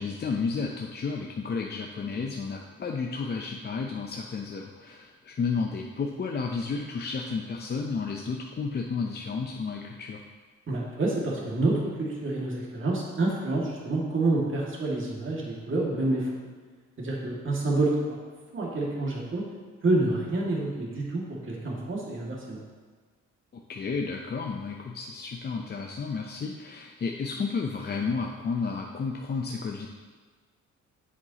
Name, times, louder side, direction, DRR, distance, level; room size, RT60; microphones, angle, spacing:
voice 1, 0.0-10.2 23.5-29.9, left 4 dB, 35° left, 1 dB, 0.6 m, -32 dB
voice 2, 10.7-16.3 17.0-17.9 18.5-19.4 19.8-22.6, right 2 dB, 40° right, -4 dB, 2.2 m, -28 dB
8.1 x 7.3 x 2.9 m, 1.5 s
cardioid pair, 90°, 30 cm